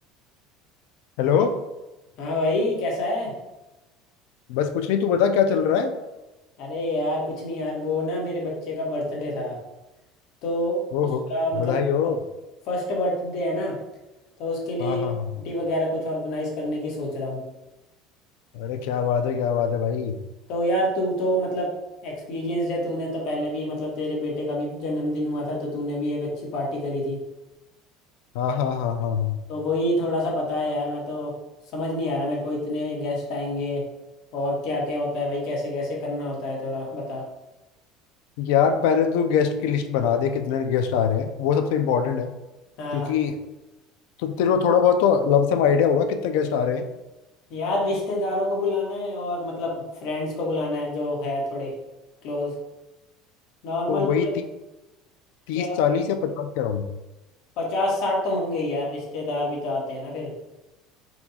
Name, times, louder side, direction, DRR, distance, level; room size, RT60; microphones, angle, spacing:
voice 1, 1.2-1.6 4.5-5.9 10.9-11.2 11.6-12.2 14.8-15.3 18.5-20.2 28.3-29.4 38.4-42.3 42.9-43.4 44.2-46.8 53.9-54.3 55.5-56.9, left 7 dB, 70° left, 7 dB, 0.4 m, -22 dB
voice 2, 2.2-3.3 6.6-9.6 10.4-11.8 12.6-13.8 14.4-15.0 15.3-17.4 20.5-21.7 22.0-27.2 29.5-31.3 31.7-33.9 34.3-37.3 42.8-43.1 47.5-51.7 52.2-52.5 53.6-54.3 55.5-55.8 57.6-60.3, left 1 dB, 50° left, -2 dB, 1.2 m, -27 dB
4.1 x 2.3 x 4.1 m, 1.0 s
cardioid pair, 175°, 0 cm